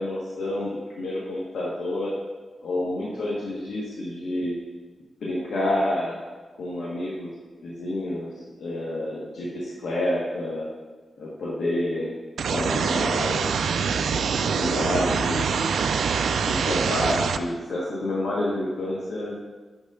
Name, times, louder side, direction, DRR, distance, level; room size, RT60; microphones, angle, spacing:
voice 1, 0.0-2.1 2.6-4.5 5.2-6.2 6.6-7.3 7.6-8.3 8.6-10.6 11.2-12.1 12.5-13.5 14.3-15.5 16.4-19.4, left 1 dB, 90° left, -7 dB, 1.4 m, -28 dB
sound 1, 12.4-17.4, right 6 dB, 80° right, 0.3 m, -24 dB
6.4 x 5.3 x 4.9 m, 1.3 s
wide cardioid pair, 160°, 0 cm